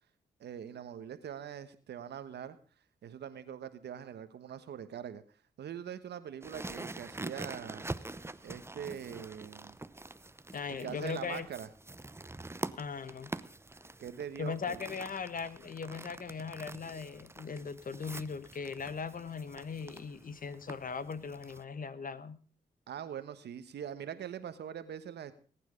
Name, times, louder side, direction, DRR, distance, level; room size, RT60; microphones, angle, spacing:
voice 1, 0.4-2.6 3.0-5.2 5.6-7.8 8.4-9.8 10.7-11.7 14.0-14.9 22.9-25.3, right 9 dB, 85° right, 12 dB, 1.3 m, -43 dB
sound 1, 6.4-21.6, right 2 dB, 15° right, 0.7 m, -45 dB
voice 2, 10.5-11.5 12.8-13.3 14.4-22.4, left 5 dB, 55° left, 15 dB, 1.2 m, -39 dB
18.5 x 9.2 x 5.2 m, 0.39 s
cardioid pair, 55°, 17 cm